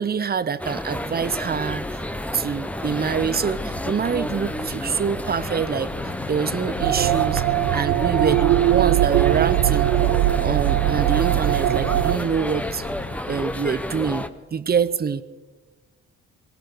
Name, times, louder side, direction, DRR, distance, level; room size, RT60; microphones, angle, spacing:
voice 1, 0.0-2.0 2.3-5.9 6.3-7.4 7.7-9.9 10.4-12.8 13.3-14.2 14.5-15.2, right 6 dB, 30° right, 15 dB, 0.7 m, -25 dB
sound 1, 0.6-14.3, left 1 dB, 5° left, 0.8 m, -30 dB
Fire, 2.9-13.2, left 8 dB, 75° left, 1.4 m, -39 dB
sound 2, 6.8-12.2, right 15 dB, 80° right, 0.5 m, -20 dB
18.5 x 17.0 x 4.6 m, 1.3 s
cardioid pair, 90°, 30 cm